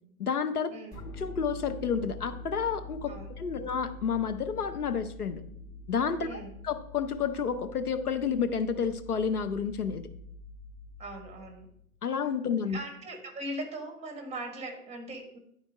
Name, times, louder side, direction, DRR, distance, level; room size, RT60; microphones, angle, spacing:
voice 1, 0.2-0.7 1.2-3.1 3.4-5.4 5.9-6.4 6.6-10.1 12.0-12.8, left 6 dB, 80° left, 9 dB, 0.8 m, -30 dB
sound 1, 0.9-11.9, left 2 dB, 20° left, 3.7 m, -45 dB
voice 2, 6.2-6.6 11.0-11.7 12.7-15.4, right 1 dB, 15° right, 3 dB, 1.5 m, -40 dB
10.5 x 4.4 x 4.6 m, 0.72 s
figure-of-eight pair, 105°, 45 cm